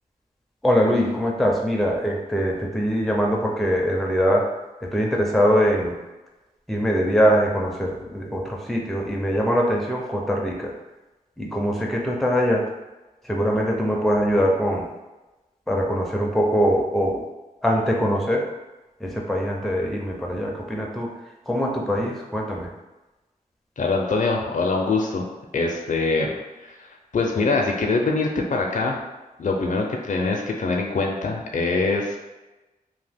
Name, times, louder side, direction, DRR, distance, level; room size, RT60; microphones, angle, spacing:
voice 1, 0.6-4.5 4.8-6.0 6.7-10.7 11.4-12.6 13.2-14.9 15.7-17.2 17.6-18.5 19.0-21.1 21.5-22.7, equal, ahead, -1 dB, 0.4 m, -22 dB
voice 2, 23.8-25.3 25.5-26.3 26.6-26.8 27.1-29.0 29.4-32.2, left 3 dB, 60° left, 1 dB, 0.4 m, -23 dB
2.8 x 2.1 x 3.4 m, 1.1 s
wide cardioid pair, 110°, 15 cm